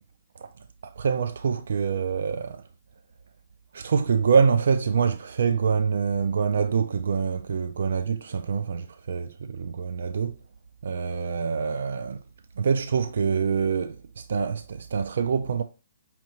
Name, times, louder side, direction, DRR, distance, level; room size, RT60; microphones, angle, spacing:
voice 1, 0.8-2.6 3.7-10.4 10.8-12.2 12.6-15.6, right 6 dB, 70° right, 0.3 m, -25 dB
5.4 x 2.9 x 2.9 m
hypercardioid pair, 165°, 0 cm